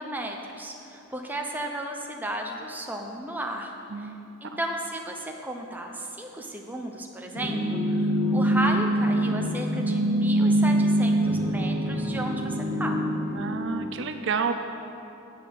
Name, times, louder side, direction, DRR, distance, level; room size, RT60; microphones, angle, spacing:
voice 1, 0.0-4.1 4.4-13.0, right 1 dB, 10° right, 1 dB, 0.8 m, -34 dB
sound 1, 7.3-13.7, right 1 dB, 70° left, 2.1 m, -24 dB
voice 2, 13.3-14.5, right 5 dB, 55° right, 6 dB, 0.6 m, -29 dB
9.0 x 8.6 x 7.7 m, 2.8 s
head